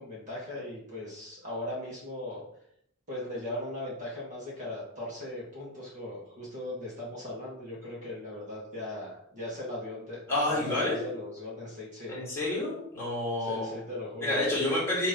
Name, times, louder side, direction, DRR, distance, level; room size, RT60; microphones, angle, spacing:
voice 1, 0.0-2.4 3.1-10.2 10.5-12.1 13.4-14.6, left 1 dB, 35° right, -5 dB, 1.8 m, -38 dB
voice 2, 10.3-11.1 12.1-13.7 14.2-15.1, left 1 dB, 10° left, -7 dB, 2.6 m, -29 dB
6.2 x 3.2 x 5.3 m, 0.72 s
head